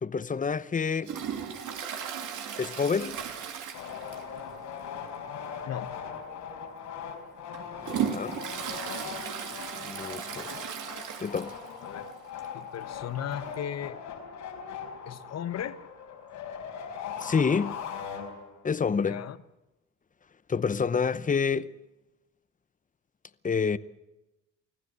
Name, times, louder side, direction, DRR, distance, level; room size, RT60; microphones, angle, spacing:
voice 1, 0.0-1.1 2.6-3.2 7.8-8.4 9.8-10.5 11.2-11.6 17.2-17.8 18.6-19.2 20.5-21.7 23.4-23.8, left 5 dB, 25° left, 0.8 m, -28 dB
Toilet flush, 1.0-4.5 4.7-4.8 5.3-5.4 6.2-6.3 6.9-11.8 12.1-12.2 12.4-12.5 13.5-13.6, right 8 dB, 80° right, 2.6 m, -36 dB
sound 1, 3.7-18.7, left 7 dB, 90° left, 4.7 m, -40 dB
voice 2, 12.5-14.0 15.0-15.9 19.0-19.4, left 9 dB, 55° left, 1.1 m, -36 dB
25.0 x 15.5 x 8.1 m
cardioid pair, 90°, 30 cm